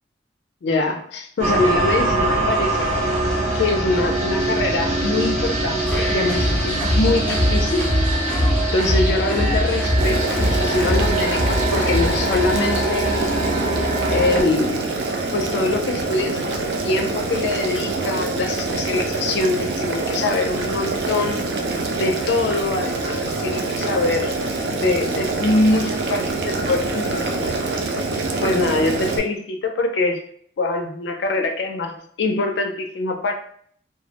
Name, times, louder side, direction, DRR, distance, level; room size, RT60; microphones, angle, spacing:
voice 1, 0.6-2.9 3.5-7.9 8.7-13.3 14.1-14.9 15.3-21.4 21.9-24.3 24.7-27.5 28.4-30.2 30.6-33.3, left 2 dB, 75° left, 4 dB, 0.4 m, -23 dB
sound 1, 1.4-14.4, right 1 dB, 40° right, 0.7 m, -23 dB
sound 2, 5.9-13.1, left 1 dB, 5° left, 0.4 m, -23 dB
Boiling, 10.0-29.2, right 3 dB, 65° right, 0.4 m, -25 dB
2.2 x 2.0 x 2.7 m, 0.62 s
head